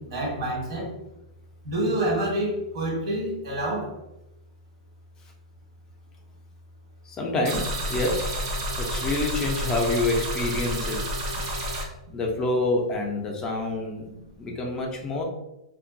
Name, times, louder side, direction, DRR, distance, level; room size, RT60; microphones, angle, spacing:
voice 1, 0.1-0.9 1.6-3.9, right 1 dB, 65° right, -2 dB, 1.3 m, -27 dB
voice 2, 7.0-8.2 8.8-11.0 12.1-14.1 14.4-15.2, left 2 dB, 20° left, 0 dB, 0.4 m, -27 dB
sound 1, 7.4-11.8, equal, 50° right, 0.7 m, -29 dB
2.5 x 2.2 x 2.5 m, 0.91 s
hypercardioid pair, 140°, 3 cm